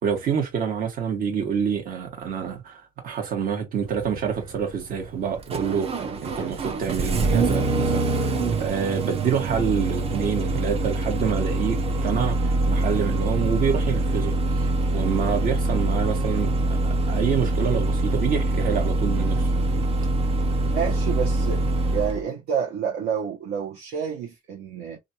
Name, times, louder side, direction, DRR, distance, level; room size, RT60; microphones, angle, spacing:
voice 1, 0.0-8.3 8.6-19.5, right 7 dB, 55° right, 1.5 m, -27 dB
Engine starting, 3.8-22.2, right 2 dB, 35° right, 0.8 m, -24 dB
voice 2, 20.6-21.6 21.9-25.0, right 7 dB, 70° right, 1.1 m, -29 dB
3.2 x 2.6 x 2.8 m
cardioid pair, 110°, 17 cm